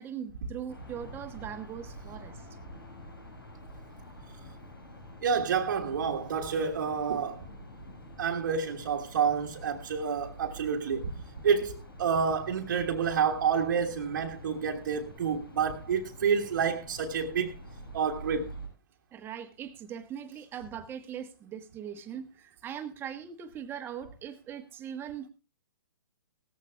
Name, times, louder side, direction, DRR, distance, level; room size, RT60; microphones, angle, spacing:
voice 1, 0.0-2.5 14.5-14.7 19.1-25.3, right 9 dB, 20° right, 1.2 m, -40 dB
sound 1, 0.7-18.7, equal, 85° left, 6.7 m, -47 dB
voice 2, 5.2-7.4 8.2-11.1 11.4-17.5 17.9-18.5, right 6 dB, 55° right, 1.4 m, -29 dB
17.5 x 14.5 x 2.3 m
figure-of-eight pair, 120°, 12 cm